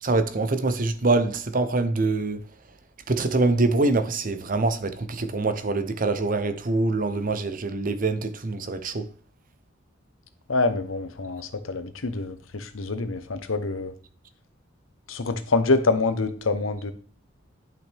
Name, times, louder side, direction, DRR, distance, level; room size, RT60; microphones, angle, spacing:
voice 1, 0.0-2.4 3.1-9.1, right 3 dB, 45° right, 0.7 m, -24 dB
voice 2, 10.5-13.9 15.1-16.9, left 3 dB, 85° left, 0.9 m, -26 dB
11.0 x 5.9 x 3.5 m
head